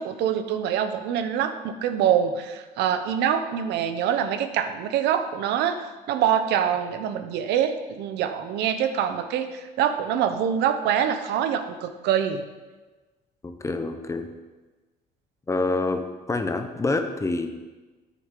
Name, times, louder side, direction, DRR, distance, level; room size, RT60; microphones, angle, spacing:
voice 1, 0.0-12.4, right 9 dB, 80° right, 9 dB, 0.7 m, -25 dB
voice 2, 13.4-14.3 15.5-17.5, left 3 dB, 15° left, 7 dB, 0.7 m, -27 dB
9.1 x 6.8 x 3.8 m, 1.2 s
cardioid pair, 110°, 17 cm